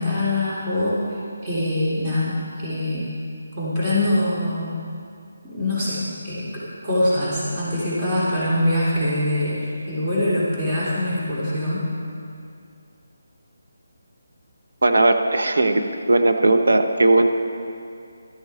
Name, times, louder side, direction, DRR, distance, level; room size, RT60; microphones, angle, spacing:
voice 1, 0.0-3.0 3.6-4.7 5.4-11.8, left 1 dB, 20° right, -10 dB, 3.2 m, -24 dB
voice 2, 14.8-17.3, right 2 dB, 75° right, 5 dB, 1.1 m, -18 dB
13.5 x 13.0 x 4.3 m, 2.5 s
figure-of-eight pair, 160°, 0 cm